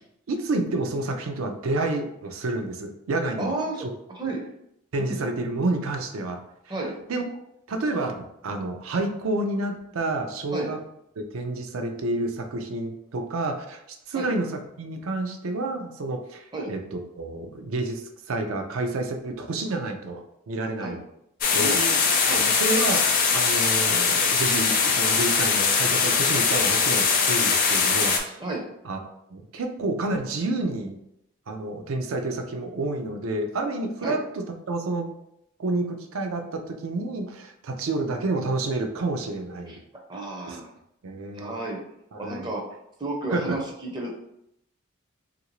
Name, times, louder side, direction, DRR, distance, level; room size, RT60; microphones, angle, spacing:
voice 1, 0.3-3.9 4.9-6.4 7.1-7.2 7.7-10.8 11.2-13.8 14.1-18.0 18.3-21.0 21.5-21.8 22.3-23.0 23.3-28.4 28.8-29.0 29.3-31.0 31.5-35.1 35.6-39.8 40.5-40.6 41.0-41.5 42.1-42.5 43.3-43.6, right 2 dB, 80° right, 5 dB, 0.5 m, -29 dB
voice 2, 3.4-4.4 5.0-5.2 6.7-6.9 10.5-10.7 14.1-14.3 16.5-16.7 20.8-21.0 21.5-22.0 22.2-22.4 28.4-28.6 34.0-34.2 39.7-39.8 40.1-40.7 41.3-41.8 42.2-42.6 43.0-44.1, right 2 dB, 20° right, 0 dB, 0.4 m, -32 dB
sound 1, 21.4-28.2, left 5 dB, 40° left, 0.4 m, -21 dB
3.1 x 2.5 x 3.0 m, 0.79 s
head